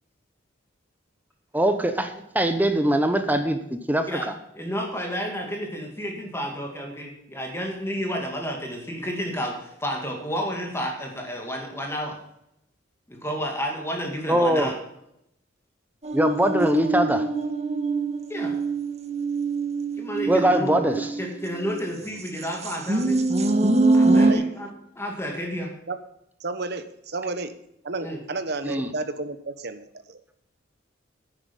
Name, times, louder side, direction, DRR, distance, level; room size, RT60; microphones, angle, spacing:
voice 1, 1.5-4.3 14.3-14.7 16.1-17.3 20.3-21.1 28.6-28.9, right 1 dB, 10° right, 8 dB, 0.9 m, -22 dB
voice 2, 4.5-12.2 13.1-14.8 18.3-18.6 20.0-20.8 21.2-23.2 23.9-24.7 25.0-25.7 28.0-28.2, equal, 15° left, 1 dB, 2.2 m, -31 dB
sound 1, 16.0-21.8 22.4-24.3, right 2 dB, 35° right, 1.2 m, -23 dB
voice 3, 26.4-27.5 27.8-30.4, right 3 dB, 55° right, 11 dB, 1.1 m, -32 dB
10.5 x 10.0 x 5.4 m, 0.80 s
head